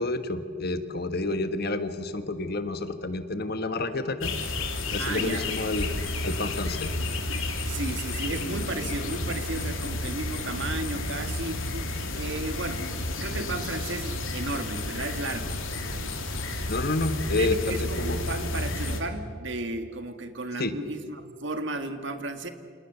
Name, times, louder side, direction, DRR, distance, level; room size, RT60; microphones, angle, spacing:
voice 1, 0.0-4.3 4.9-5.9 6.2-6.9 16.7-18.3 20.6-20.7, left 2 dB, 45° left, 9 dB, 1.5 m, -29 dB
sound 1, 4.2-19.0, left 2 dB, 70° left, 3.4 m, -31 dB
voice 2, 5.0-5.5 7.7-15.6 17.3-22.5, right 2 dB, 55° right, 7 dB, 2.0 m, -34 dB
29.5 x 28.0 x 6.9 m, 2.2 s
head